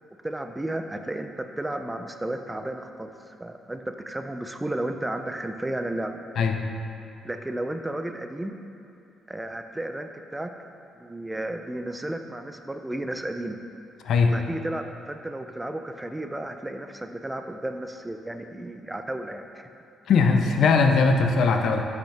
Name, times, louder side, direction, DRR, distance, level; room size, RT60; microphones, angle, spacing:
voice 1, 0.2-6.2 7.2-8.5 9.3-10.5 11.0-13.6 14.3-19.7, right 1 dB, 10° right, 6 dB, 0.4 m, -33 dB
voice 2, 20.1-21.8, left 4 dB, 70° left, 4 dB, 0.6 m, -20 dB
7.9 x 5.9 x 3.4 m, 2.6 s
cardioid pair, 90°, 0 cm